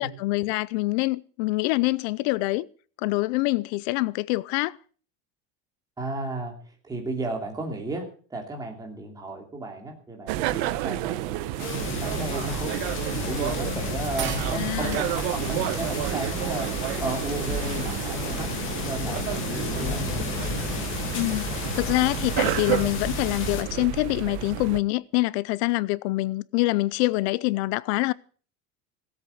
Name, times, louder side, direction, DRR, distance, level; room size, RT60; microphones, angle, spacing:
voice 1, 0.0-2.7 3.0-4.8 14.5-15.0 21.1-21.5 21.8-28.1, left 21 dB, 80° left, 0.6 m, -25 dB
voice 2, 6.0-6.5 6.8-11.5 12.0-16.7 17.0-18.5 18.9-20.1, right 2 dB, 10° right, 2.9 m, -34 dB
sound 1, 10.3-24.8, right 15 dB, 70° right, 1.1 m, -31 dB
sound 2, 11.5-18.2, right 9 dB, 35° right, 2.2 m, -42 dB
sound 3, 11.6-23.6, left 6 dB, 40° left, 2.3 m, -32 dB
17.0 x 8.1 x 6.9 m
cardioid pair, 180°, 32 cm